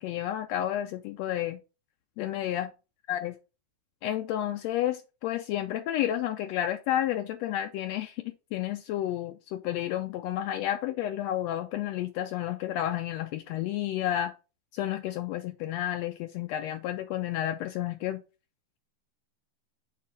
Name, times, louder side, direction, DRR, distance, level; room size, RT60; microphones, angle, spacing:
voice 1, 0.0-1.6 2.2-2.7 3.1-3.3 4.0-14.3 14.7-18.2, left 12 dB, 85° left, 1.5 m, -31 dB
6.7 x 3.2 x 5.2 m
omnidirectional pair, 3.5 m